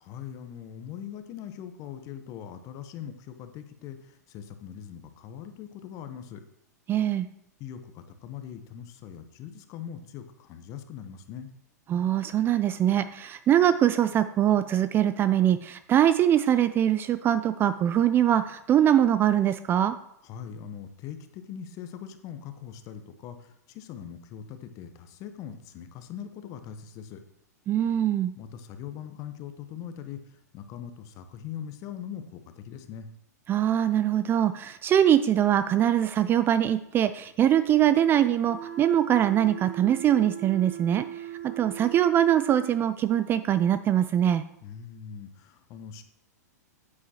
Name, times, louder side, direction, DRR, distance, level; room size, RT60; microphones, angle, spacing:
voice 1, 0.0-6.4 7.6-11.5 20.2-27.2 28.4-33.1 44.6-46.0, left 9 dB, 35° left, 9 dB, 0.9 m, -41 dB
voice 2, 6.9-7.3 11.9-19.9 27.7-28.3 33.5-44.4, right 10 dB, 25° right, 12 dB, 0.3 m, -23 dB
sound 1, 38.4-42.7, right 11 dB, 85° right, 2.3 m, -39 dB
9.2 x 8.6 x 2.9 m, 0.75 s
hypercardioid pair, 110°, 9 cm